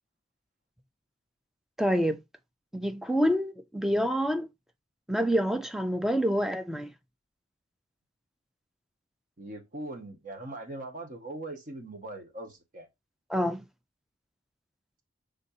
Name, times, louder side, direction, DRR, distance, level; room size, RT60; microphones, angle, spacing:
voice 1, 1.8-2.2 2.7-4.5 5.1-6.9 13.3-13.7, equal, ahead, 0.4 m, -27 dB
voice 2, 9.4-12.9, right 2 dB, 45° right, 1.2 m, -41 dB
5.3 x 3.7 x 2.7 m
head